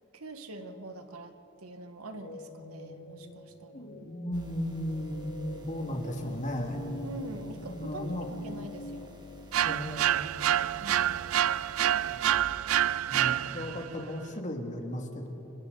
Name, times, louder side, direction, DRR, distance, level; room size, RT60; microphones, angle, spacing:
voice 1, 0.1-1.3 1.6-3.9 7.0-9.1 10.8-11.3, right 1 dB, 85° right, 6 dB, 1.7 m, -44 dB
sound 1, 2.1-9.8, left 2 dB, 70° left, 2.4 m, -45 dB
voice 2, 3.7-6.8 7.7-8.3 9.6-10.1 12.1-12.2 13.1-15.3, equal, 35° left, 2 dB, 2.3 m, -35 dB
sound 2, 4.3-12.4, left 1 dB, 20° right, 1.9 m, -52 dB
sound 3, 9.5-13.9, right 11 dB, 70° right, 0.4 m, -27 dB
29.5 x 24.5 x 4.1 m, 2.9 s
head